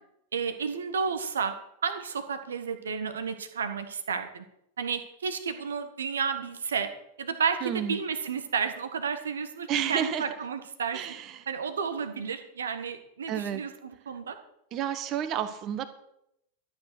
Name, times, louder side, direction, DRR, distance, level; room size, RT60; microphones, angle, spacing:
voice 1, 0.3-1.5 1.8-4.4 4.8-6.9 7.2-11.0 11.5-14.4, right 6 dB, 70° right, 9 dB, 1.6 m, -31 dB
voice 2, 7.6-8.0 9.7-10.2 10.9-11.4 13.3-13.6 14.7-15.9, right 9 dB, 35° right, 11 dB, 1.5 m, -31 dB
13.0 x 9.4 x 6.3 m, 0.79 s
figure-of-eight pair, 90°, 0 cm